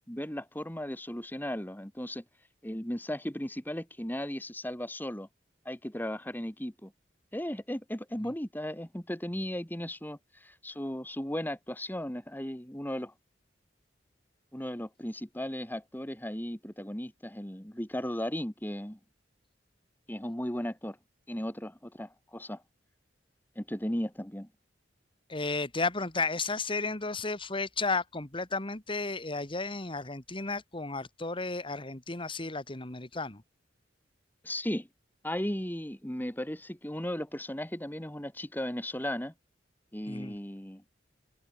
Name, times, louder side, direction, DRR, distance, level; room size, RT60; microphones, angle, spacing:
voice 1, 0.1-2.2 2.6-5.3 5.7-6.9 7.3-13.1 14.5-19.0 20.1-21.0 21.3-22.6 23.6-24.5 34.4-34.9 35.2-39.3 39.9-40.8, left 1 dB, 10° left, 2.3 m, -36 dB
voice 2, 25.3-33.4 40.1-40.4, left 3 dB, 30° left, 2.1 m, -33 dB
head